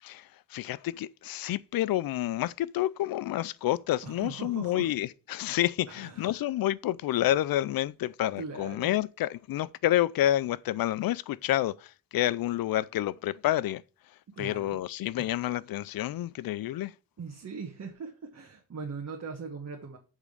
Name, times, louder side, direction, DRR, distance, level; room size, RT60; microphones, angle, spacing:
voice 1, 0.0-13.8 14.1-16.9, left 14 dB, 85° left, 0.5 m, -29 dB
voice 2, 4.0-4.9 5.9-6.7 8.3-8.9 14.3-14.8 15.2-15.3 17.2-20.0, right 5 dB, 50° right, 1.4 m, -41 dB
8.2 x 3.7 x 6.6 m
cardioid pair, 100°, 34 cm